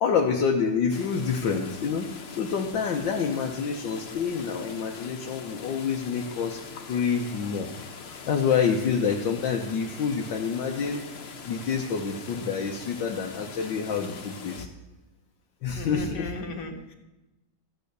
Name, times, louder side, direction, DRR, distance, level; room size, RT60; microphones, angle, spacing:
voice 1, 0.0-11.0 11.5-14.7 15.6-16.3, left 6 dB, 75° left, 1 dB, 1.7 m, -27 dB
sound 1, 0.9-14.7, left 5 dB, 45° left, 1.0 m, -42 dB
voice 2, 15.8-17.0, left 2 dB, 60° left, 2 dB, 2.2 m, -36 dB
14.0 x 9.0 x 6.7 m, 1.0 s
omnidirectional pair, 2.1 m